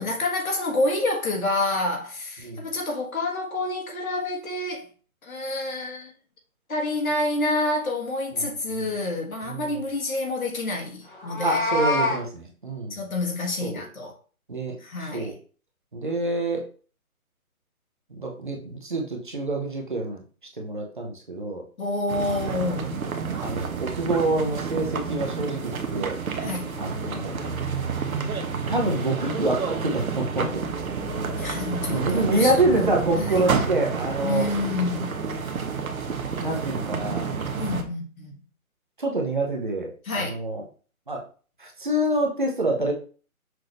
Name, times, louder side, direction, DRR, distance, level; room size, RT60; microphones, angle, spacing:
voice 1, 0.0-4.9 5.2-6.1 6.7-11.6 12.9-14.1 14.8-15.4 21.8-23.0 26.4-26.6 31.4-33.5 34.2-35.1 37.6-38.4 40.0-40.4, left 2 dB, 70° left, 1.7 m, -28 dB
Meow, 11.1-12.2, left 2 dB, 35° left, 0.9 m, -25 dB
voice 2, 11.4-13.0 13.6-13.8 14.5-14.8 15.1-15.3 15.9-16.6 18.2-20.2 20.6-21.6 22.3-22.7 23.4-26.1 26.8-27.3 28.7-30.6 31.2-31.5 31.9-34.4 36.4-37.3 39.0-40.6 41.1-41.2 41.6-42.9, right 2 dB, 35° right, 0.8 m, -27 dB
sound 1, 22.1-37.8, right 5 dB, 70° right, 1.0 m, -29 dB
6.0 x 2.6 x 3.2 m
hypercardioid pair, 175°, 44 cm